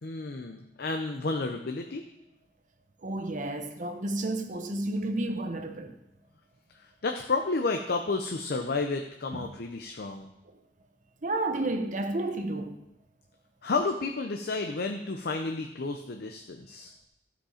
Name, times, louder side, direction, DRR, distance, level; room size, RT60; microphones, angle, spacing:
voice 1, 0.0-2.1 6.7-10.3 13.6-16.9, left 3 dB, 60° left, 0.7 m, -31 dB
voice 2, 3.0-6.0 9.4-9.5 11.2-12.8, right 2 dB, 45° right, 0.9 m, -31 dB
14.5 x 5.2 x 5.0 m
head